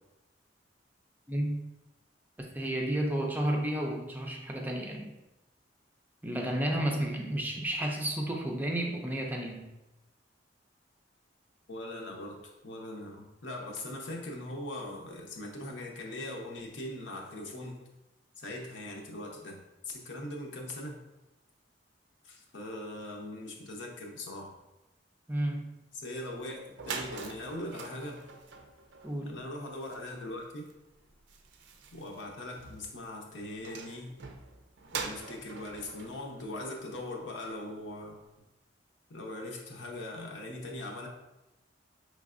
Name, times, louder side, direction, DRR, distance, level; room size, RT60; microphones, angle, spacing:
voice 1, 1.3-1.6 2.4-5.1 6.2-9.7 25.3-25.8 29.0-29.3, right 1 dB, 10° right, 1 dB, 0.4 m, -32 dB
voice 2, 11.7-17.8 18.4-21.0 22.2-24.5 25.9-28.3 29.2-30.7 31.9-34.2 34.9-38.2 39.1-41.1, left 1 dB, 75° left, 0 dB, 0.8 m, -41 dB
sound 1, 26.7-37.5, right 5 dB, 70° right, 0.4 m, -45 dB
5.1 x 3.2 x 2.5 m, 0.97 s
head